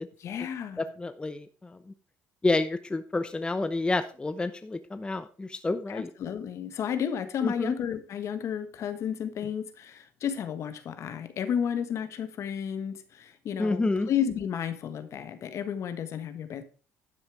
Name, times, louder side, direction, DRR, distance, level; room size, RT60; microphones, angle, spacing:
voice 1, 0.2-0.8 5.9-16.6, left 8 dB, 55° left, 11 dB, 1.4 m, -32 dB
voice 2, 1.0-1.8 2.4-6.1 7.4-7.7 13.6-14.1, left 2 dB, 15° left, 10 dB, 0.8 m, -29 dB
11.5 x 6.4 x 4.8 m, 0.37 s
supercardioid pair, 80°, 6 cm